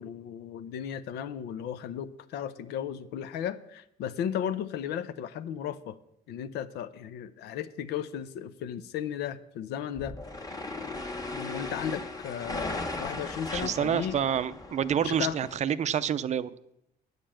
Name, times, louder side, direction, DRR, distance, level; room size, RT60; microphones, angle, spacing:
voice 1, 0.0-6.0 6.3-10.2 11.3-14.2 15.0-15.4, left 9 dB, 80° left, 13 dB, 0.8 m, -35 dB
sound 1, 10.0-15.6, left 2 dB, 20° left, 1.6 m, -37 dB
voice 2, 13.5-16.5, right 8 dB, 45° right, 15 dB, 0.5 m, -28 dB
9.6 x 6.8 x 7.5 m, 0.80 s
cardioid pair, 110°, 17 cm